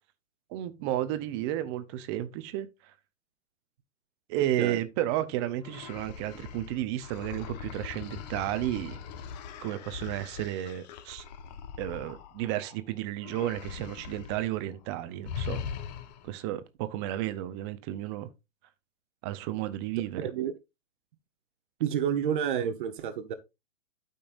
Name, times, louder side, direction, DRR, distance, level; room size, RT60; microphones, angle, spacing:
voice 1, 0.5-2.7 4.3-9.0 9.6-11.2 11.8-15.6 16.2-18.3 19.2-20.2, right 13 dB, 20° right, 0.6 m, -32 dB
sound 1, 5.6-12.8 13.2-14.5 14.7-14.9 15.2-16.4, left 7 dB, 35° left, 0.9 m, -41 dB
voice 2, 20.2-20.5 21.8-23.3, right 9 dB, 40° right, 1.0 m, -29 dB
12.5 x 5.4 x 2.5 m
hypercardioid pair, 140°, 39 cm